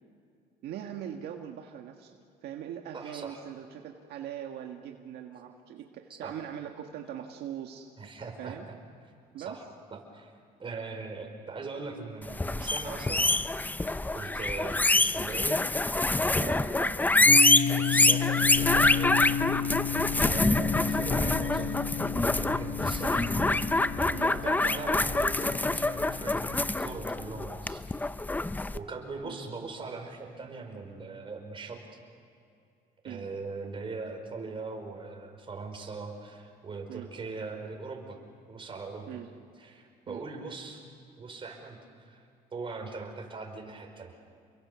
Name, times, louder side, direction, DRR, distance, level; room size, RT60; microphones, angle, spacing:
voice 1, 0.6-2.1 2.4-7.9 8.4-8.7 9.3-9.6 16.4-16.9 24.1-24.3 29.2-29.4 33.1-33.3 36.9-37.1 39.1-39.3 40.1-40.2, right 10 dB, 75° right, 2 dB, 1.7 m, -41 dB
voice 2, 2.9-3.4 6.1-6.3 8.0-8.7 9.5-9.6 9.9-10.3 10.6-13.3 14.1-15.6 16.2-17.0 17.8-19.4 19.9-21.8 22.3-23.3 24.2-27.8 28.7-31.8 33.0-38.2 38.5-39.1 39.6-40.9 41.2-42.2 42.5-44.2, right 4 dB, 30° right, 3 dB, 5.1 m, -40 dB
sound 1, 12.3-28.8, left 2 dB, 10° left, 0.6 m, -26 dB
sound 2, 17.3-27.4, left 7 dB, 50° left, 2.0 m, -33 dB
29.0 x 23.5 x 7.0 m, 2.5 s
cardioid pair, 110°, 17 cm